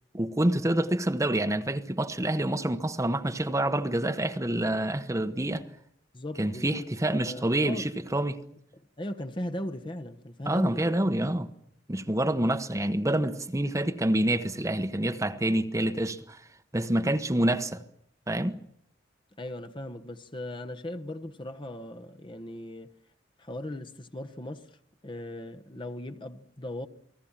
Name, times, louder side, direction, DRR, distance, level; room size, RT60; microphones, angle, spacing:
voice 1, 0.1-5.6 6.4-8.4 10.5-11.5 11.9-16.4 16.7-17.8 18.3-18.6, right 1 dB, 15° right, 1.1 m, -27 dB
voice 2, 6.1-6.9 7.2-7.9 8.7-10.9 19.4-22.9 23.4-24.7 25.0-26.9, left 1 dB, 25° left, 1.2 m, -38 dB
29.0 x 19.5 x 7.5 m
head